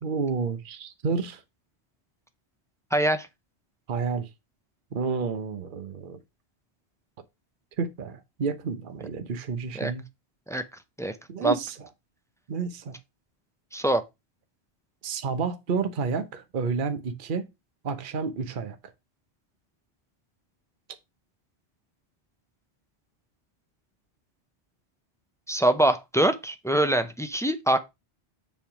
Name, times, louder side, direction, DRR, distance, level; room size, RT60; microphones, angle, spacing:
voice 1, 0.0-1.4 3.9-4.3 4.9-6.2 7.8-10.0 11.3-11.9 12.5-13.0 15.0-17.5 17.8-18.8, right 5 dB, 50° right, 1.0 m, -30 dB
voice 2, 2.9-3.3 9.8-9.9 10.5-10.6 11.0-11.1 11.4-11.5 13.7-14.0 25.5-27.8, right 1 dB, 5° left, 0.4 m, -23 dB
7.3 x 3.5 x 5.8 m
omnidirectional pair, 1.1 m